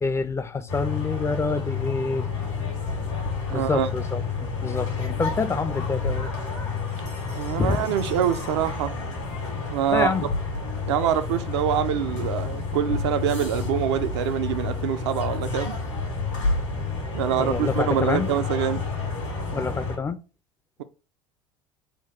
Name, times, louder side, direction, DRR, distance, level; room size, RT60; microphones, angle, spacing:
voice 1, 0.0-2.3 3.5-6.3 7.6-7.9 9.9-10.3 17.4-18.3 19.5-20.2, left 4 dB, 15° left, 0.4 m, -27 dB
sound 1, 0.7-20.0, left 4 dB, 75° left, 1.7 m, -30 dB
voice 2, 3.5-3.9 7.3-9.0 9.7-10.1 10.9-15.8 17.1-18.8, right 9 dB, 65° right, 0.4 m, -25 dB
4.0 x 2.2 x 4.2 m
figure-of-eight pair, 65°, 16 cm